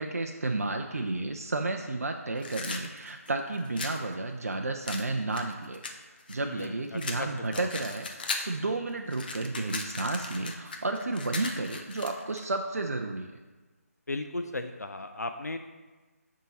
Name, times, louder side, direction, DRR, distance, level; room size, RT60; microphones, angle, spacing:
voice 1, 0.0-13.3, right 2 dB, 65° right, 4 dB, 0.4 m, -32 dB
sound 1, 2.4-4.0 4.9-6.7 7.0-8.6 8.9-12.4, left 3 dB, 35° left, 0.6 m, -37 dB
voice 2, 6.4-7.3 7.5-7.7 14.1-15.6, left 2 dB, 85° left, 7 dB, 0.4 m, -36 dB
8.9 x 3.7 x 4.1 m, 1.3 s
figure-of-eight pair, 150°, 9 cm